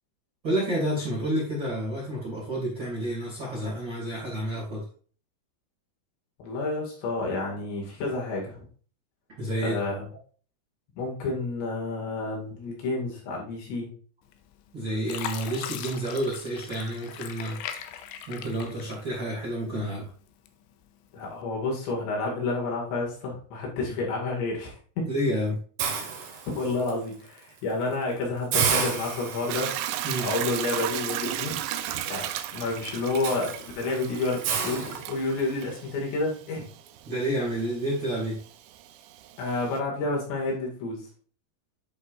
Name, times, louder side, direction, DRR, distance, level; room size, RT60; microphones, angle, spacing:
voice 1, 0.4-4.8 9.4-9.7 14.7-17.6 18.3-20.1 25.1-25.6 30.0-30.3 37.0-38.4, right 1 dB, 30° right, -6 dB, 2.3 m, -29 dB
voice 2, 6.4-8.7 9.6-10.1 11.0-13.9 21.1-25.1 26.5-29.7 30.2-31.6 32.1-36.7 39.4-41.1, left 3 dB, 65° left, -2 dB, 4.1 m, -30 dB
Fill (with liquid), 14.3-14.7 15.1-19.5 19.9-20.7 21.3-21.4, left 9 dB, 85° left, 2.5 m, -39 dB
Hiss, 25.8-26.9 27.4-27.6 27.9-28.0 28.5-35.6, right 6 dB, 65° right, 3.2 m, -32 dB
Hiss / Toilet flush / Trickle dribble, 29.5-39.8, right 12 dB, 85° right, 2.6 m, -35 dB
11.0 x 5.4 x 2.5 m, 0.43 s
omnidirectional pair, 5.8 m